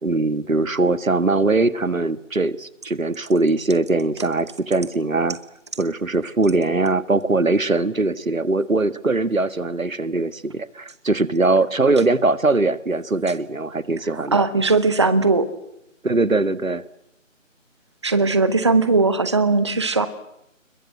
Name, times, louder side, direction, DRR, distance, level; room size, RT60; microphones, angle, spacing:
voice 1, 0.0-5.4 5.8-14.4 16.0-16.8, right 2 dB, 85° right, 15 dB, 1.7 m, -21 dB
voice 2, 14.3-15.5 18.0-20.1, right 3 dB, 20° right, 13 dB, 0.9 m, -18 dB
27.5 x 22.0 x 7.8 m, 0.81 s
figure-of-eight pair, 160°, 39 cm